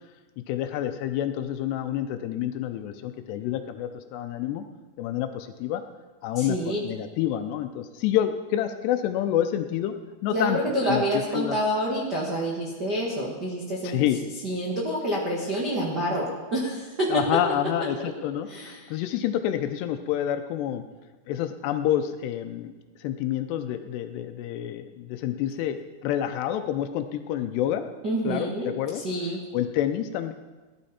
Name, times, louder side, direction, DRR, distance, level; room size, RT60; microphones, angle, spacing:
voice 1, 0.5-4.6 5.0-5.8 6.2-9.9 10.2-10.6 10.9-11.6 13.8-14.2 17.1-20.8 21.3-22.7 23.0-27.9 28.2-29.0 29.5-30.3, left 11 dB, 80° left, 8 dB, 2.6 m, -28 dB
voice 2, 6.3-6.8 10.3-14.0 14.4-16.3 16.5-17.2 18.5-18.9 28.0-28.7 28.9-29.4, right 1 dB, 80° right, -4 dB, 0.9 m, -27 dB
18.0 x 11.5 x 4.3 m, 1.3 s
omnidirectional pair, 5.2 m